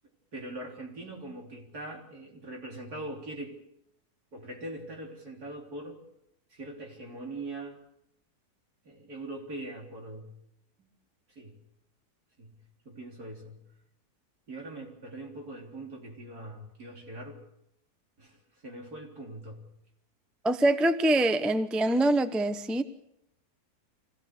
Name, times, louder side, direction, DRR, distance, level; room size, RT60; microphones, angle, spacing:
voice 1, 0.3-3.6 4.3-6.0 6.5-7.8 8.8-10.4 11.4-11.6 12.4-13.7 14.5-17.4 18.2-19.7, right 2 dB, 70° right, 0 dB, 4.1 m, -42 dB
voice 2, 20.4-22.8, right 1 dB, ahead, 10 dB, 0.6 m, -24 dB
25.0 x 16.5 x 6.7 m, 0.79 s
omnidirectional pair, 1.7 m